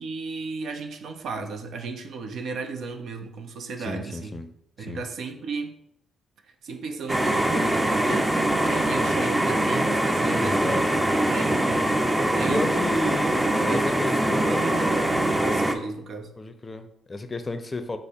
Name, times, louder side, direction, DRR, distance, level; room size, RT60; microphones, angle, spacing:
voice 1, 0.0-4.4 4.8-5.8 6.6-10.9 11.2-12.9 13.4-14.1 14.5-16.3, right 4 dB, 65° right, 0.5 m, -35 dB
voice 2, 3.8-4.5 4.8-5.0 10.4-11.0 12.5-14.7 16.4-18.0, left 2 dB, 30° left, 0.5 m, -32 dB
sound 1, 7.1-15.7, right 1 dB, 15° right, 0.5 m, -23 dB
5.0 x 2.1 x 4.2 m
hypercardioid pair, 45°, 0 cm